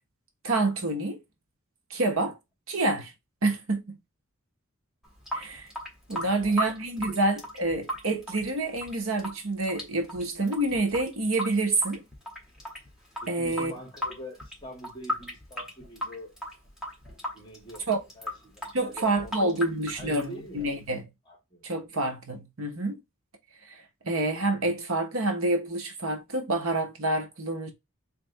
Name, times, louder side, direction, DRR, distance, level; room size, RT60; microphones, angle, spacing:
voice 1, 0.4-1.2 1.9-2.4 2.7-3.1 3.4-4.0 5.3-5.7 6.1-12.0 13.3-13.7 17.9-18.0 18.7-21.1 21.6-23.0 23.7-27.7, right 2 dB, 80° right, 1.1 m, -28 dB
Water tap faucet / Sink (filling or washing) / Drip, 5.0-21.0, left 1 dB, 5° right, 1.6 m, -37 dB
voice 2, 6.1-6.6 7.0-7.2 13.2-16.4 17.3-19.6 19.9-20.7 21.3-21.9, equal, 20° left, 1.9 m, -45 dB
3.7 x 3.4 x 3.2 m
head